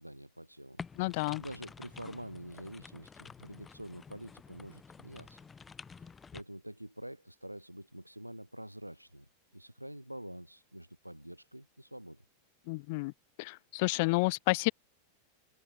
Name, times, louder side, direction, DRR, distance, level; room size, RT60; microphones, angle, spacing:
voice 1, 0.0-0.8 1.4-5.4 6.0-12.2, right 1 dB, 90° right, 1.4 m, -47 dB
sound 1, 0.8-6.4, left 5 dB, 15° left, 1.7 m, -50 dB
voice 2, 1.0-1.4 12.7-13.1 13.4-14.7, left 26 dB, 50° left, 0.4 m, -30 dB
figure-of-eight pair, 90°, 0 cm